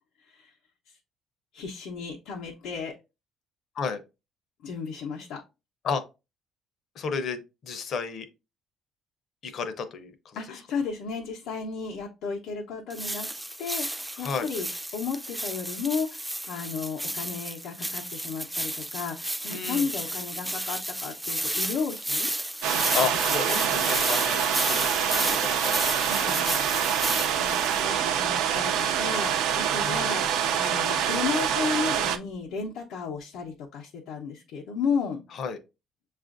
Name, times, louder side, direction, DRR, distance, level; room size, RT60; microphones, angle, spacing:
voice 1, 0.2-0.5 0.9-1.0 1.5-2.9 4.6-5.4 10.4-13.3 13.6-14.7 14.9-22.3 22.7-22.8 23.5-23.7 24.8-25.2 26.0-27.0 27.4-35.2, left 5 dB, 90° left, 0.7 m, -34 dB
voice 2, 7.0-8.3 9.4-10.4 14.2-14.5 19.5-19.9 22.9-23.6 23.9-25.8 29.8-30.0 35.3-35.6, left 5 dB, 45° left, 0.6 m, -32 dB
sound 1, 12.9-27.8, right 1 dB, 5° right, 0.3 m, -32 dB
sound 2, 22.6-32.2, right 9 dB, 90° right, 0.4 m, -26 dB
6.9 x 2.4 x 2.4 m
cardioid pair, 175°, 0 cm